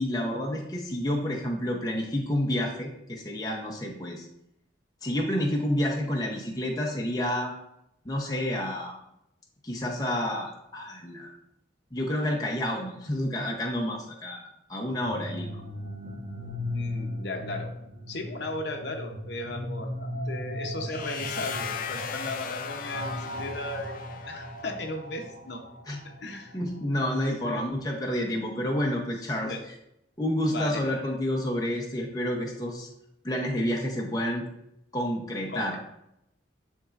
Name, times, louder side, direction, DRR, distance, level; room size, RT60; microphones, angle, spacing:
voice 1, 0.0-4.3 5.0-7.5 8.0-9.0 9.6-11.3 11.9-14.4 14.7-15.5 25.9-26.0 26.5-29.5 30.2-32.9 33.2-34.4 34.9-35.8, left 1 dB, 20° left, -1 dB, 0.8 m, -29 dB
sound 1, 14.8-26.7, left 1 dB, 35° right, 1.2 m, -37 dB
voice 2, 16.7-17.7 18.1-25.7 26.0-26.6 27.4-27.6 29.2-29.6 30.5-30.8 35.5-35.8, left 2 dB, 65° left, 3 dB, 0.9 m, -36 dB
sound 2, 20.9-24.7, left 7 dB, 45° left, 0.4 m, -37 dB
10.0 x 3.7 x 2.5 m, 0.80 s
head